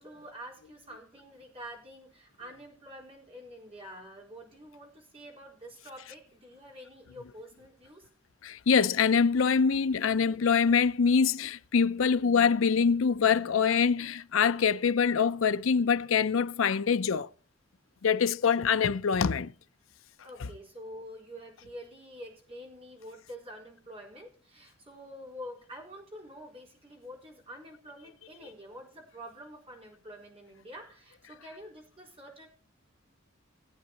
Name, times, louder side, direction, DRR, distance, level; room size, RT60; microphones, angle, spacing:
voice 1, 0.0-8.0 18.5-18.6 20.2-32.5, equal, 30° right, 4.2 m, -47 dB
voice 2, 8.4-17.3 18.0-19.5, left 6 dB, 70° left, 0.5 m, -24 dB
19.5 x 8.8 x 2.9 m
head